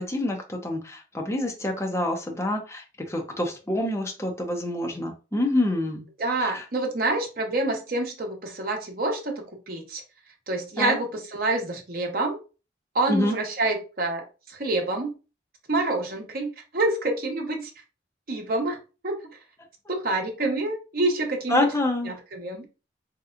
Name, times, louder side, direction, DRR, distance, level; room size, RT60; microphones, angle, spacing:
voice 1, 0.0-6.0 6.4-6.6 10.8-11.0 13.1-13.4 21.5-22.1, left 1 dB, 15° left, 3 dB, 0.7 m, -27 dB
voice 2, 6.2-10.0 10.5-12.4 12.9-15.1 15.7-17.7 18.3-18.8 19.0-19.1 19.9-21.7 22.1-22.7, right 2 dB, 55° right, 2 dB, 0.8 m, -27 dB
3.3 x 2.9 x 2.4 m, 0.32 s
head